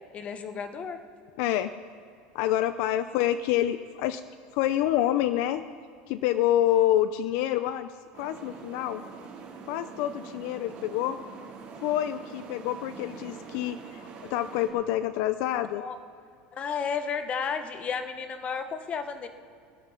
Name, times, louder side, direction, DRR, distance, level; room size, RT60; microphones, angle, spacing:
voice 1, 0.1-1.0 15.8-16.0 16.5-19.3, left 6 dB, 25° left, 9 dB, 1.0 m, -32 dB
voice 2, 1.4-1.7 2.3-4.2 4.5-5.6 6.1-7.9 8.1-9.0 9.7-11.2 11.8-15.8, left 12 dB, 60° left, 12 dB, 0.5 m, -27 dB
sound 1, 8.1-14.7, right 5 dB, 40° right, 5.0 m, -44 dB
18.0 x 11.5 x 5.6 m, 2.3 s
supercardioid pair, 155°, 5 cm